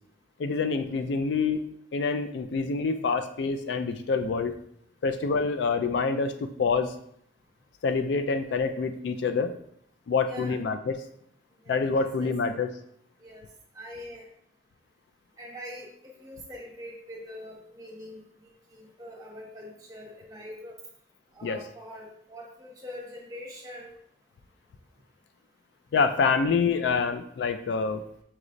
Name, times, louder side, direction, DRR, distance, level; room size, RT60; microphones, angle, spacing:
voice 1, 0.4-1.6 1.9-4.5 5.0-6.9 7.8-9.5 10.1-11.0 11.7-12.7 21.4-21.6 25.9-28.0, left 4 dB, 70° left, 9 dB, 0.3 m, -26 dB
voice 2, 10.3-10.6 11.6-12.3 13.2-13.4 13.7-14.3 15.4-15.9 16.2-20.8 21.3-23.9, left 1 dB, 20° right, -2 dB, 0.9 m, -43 dB
5.8 x 3.1 x 2.5 m, 0.69 s
head